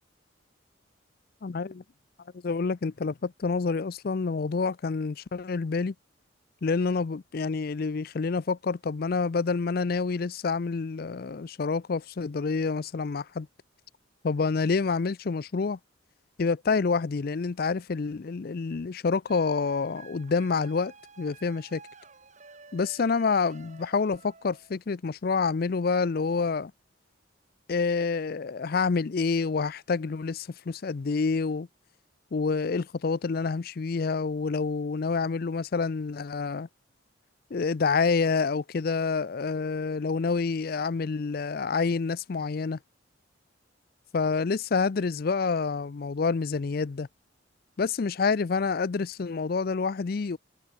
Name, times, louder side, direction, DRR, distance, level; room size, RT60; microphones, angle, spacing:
voice 1, 1.4-1.8 2.4-5.9 6.6-13.5 14.2-15.8 16.4-21.8 22.7-26.7 27.7-31.7 32.3-36.7 37.5-42.8 44.1-47.1 47.8-50.4, left 4 dB, 50° left, 0.5 m, -28 dB
sound 1, 19.3-24.8, right 4 dB, 40° right, 3.3 m, -52 dB
head